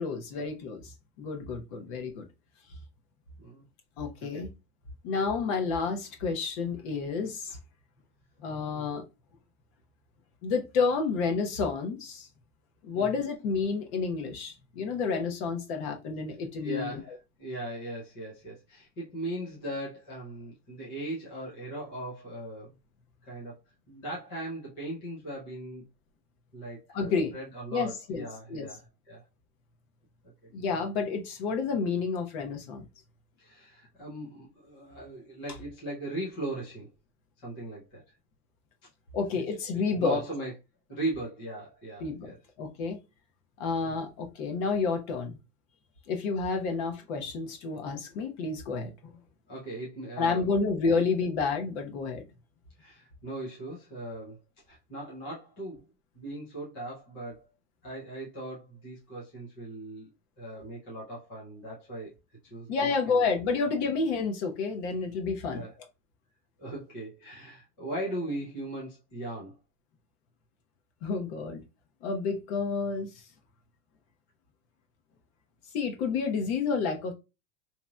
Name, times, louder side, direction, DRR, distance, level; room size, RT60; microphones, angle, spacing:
voice 1, 0.0-2.3 4.0-4.5 5.0-7.6 8.4-9.0 10.4-12.3 12.8-17.0 26.9-27.3 27.7-28.7 30.5-32.8 39.1-40.2 42.0-43.0 43.6-45.4 46.1-48.9 50.2-52.2 62.7-65.6 71.0-71.6 72.0-73.2 75.7-77.1, left 4 dB, 45° left, 0.9 m, -30 dB
voice 2, 16.6-22.7 23.3-23.6 23.9-25.8 26.5-29.2 33.4-36.9 37.4-38.0 39.3-39.4 39.9-40.5 40.9-42.4 43.8-44.0 49.5-50.5 50.9-51.0 52.8-54.4 54.7-55.8 56.1-57.4 57.8-60.1 60.4-62.1 62.4-63.3 65.5-65.7 66.6-69.5, right 1 dB, 15° left, 0.3 m, -38 dB
3.9 x 3.0 x 2.2 m
supercardioid pair, 170°, 49 cm